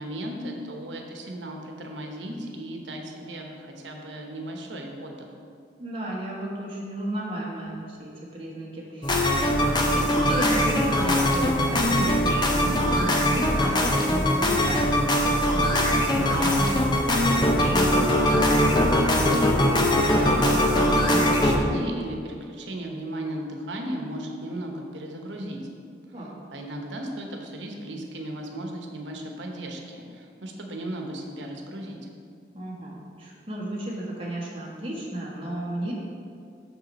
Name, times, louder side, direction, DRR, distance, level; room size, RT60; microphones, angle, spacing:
voice 1, 0.0-5.3 20.0-25.6 26.5-32.0, right 1 dB, 90° right, 2 dB, 1.0 m, -35 dB
voice 2, 5.8-18.8 26.1-26.4 32.5-35.9, right 1 dB, 30° right, -4 dB, 1.4 m, -33 dB
sound 1, 9.0-21.6, left 1 dB, 25° left, 0.7 m, -21 dB
6.7 x 6.5 x 4.2 m, 2.4 s
head